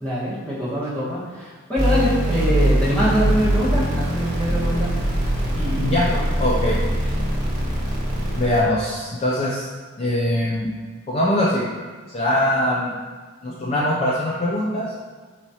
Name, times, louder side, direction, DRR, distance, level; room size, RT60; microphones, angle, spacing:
voice 1, 0.0-4.9 5.5-6.2, equal, 5° left, -10 dB, 1.3 m, -24 dB
sound 1, 1.8-8.6, right 1 dB, 20° right, 1.2 m, -22 dB
voice 2, 5.8-6.1 6.4-6.8 8.4-9.7 10.0-10.7 11.1-11.7 12.1-12.9 13.4-14.9, left 1 dB, 30° left, -5 dB, 0.4 m, -22 dB
4.7 x 4.1 x 2.8 m, 1.5 s
head